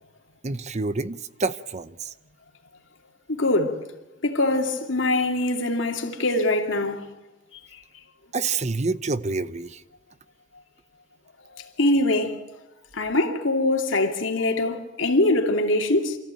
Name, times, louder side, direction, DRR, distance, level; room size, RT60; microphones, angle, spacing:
voice 1, 0.4-2.1 8.3-9.8, right 3 dB, 35° right, 0.7 m, -28 dB
voice 2, 3.3-3.8 4.2-7.1 11.8-12.4 12.9-16.2, left 2 dB, 85° left, 2.6 m, -23 dB
27.0 x 14.5 x 9.1 m
head